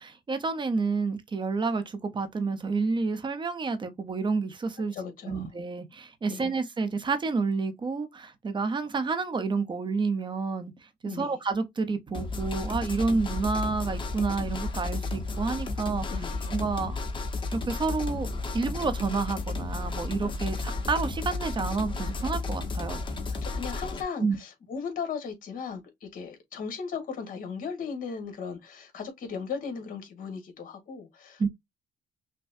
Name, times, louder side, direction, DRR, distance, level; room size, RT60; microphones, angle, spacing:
voice 1, 0.0-4.9 5.3-10.7 11.0-16.1 16.5-17.0 17.5-23.1 24.2-24.4 31.4-31.5, right 4 dB, 25° right, 0.8 m, -29 dB
voice 2, 4.9-5.5 6.3-6.5 11.0-11.4 16.1-16.5 23.4-31.5, left 6 dB, 55° left, 1.7 m, -37 dB
sound 1, 12.1-24.0, left 3 dB, 30° left, 1.0 m, -33 dB
5.6 x 2.2 x 2.6 m
cardioid pair, 110°, 17 cm